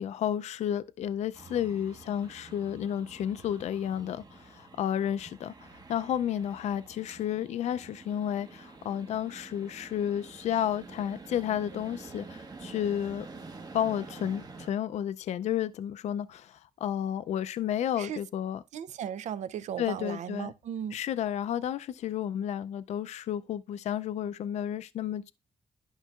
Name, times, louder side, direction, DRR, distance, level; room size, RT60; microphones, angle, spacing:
voice 1, 0.0-13.3 13.7-18.6 19.8-20.5 20.9-25.3, left 10 dB, 70° left, 0.4 m, -32 dB
sound 1, 1.3-14.7, right 3 dB, 35° right, 1.1 m, -48 dB
voice 2, 18.7-21.0, right 9 dB, 80° right, 0.5 m, -36 dB
11.0 x 5.3 x 2.4 m
cardioid pair, 80°, 12 cm